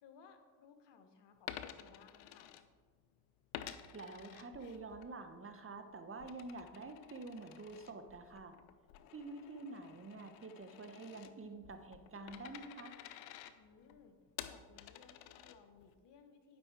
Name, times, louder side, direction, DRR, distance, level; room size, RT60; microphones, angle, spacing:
voice 1, 0.0-2.5 13.5-14.2 14.5-16.6, left 6 dB, 70° left, 7 dB, 1.3 m, -62 dB
Coin (dropping), 1.4-3.1 3.5-5.1 5.5-15.9, left 11 dB, 90° left, 0.6 m, -52 dB
voice 2, 3.9-8.5 9.1-12.9, right 3 dB, 30° right, 7 dB, 1.1 m, -48 dB
11.0 x 5.3 x 4.8 m, 1.5 s
supercardioid pair, 60°, 44 cm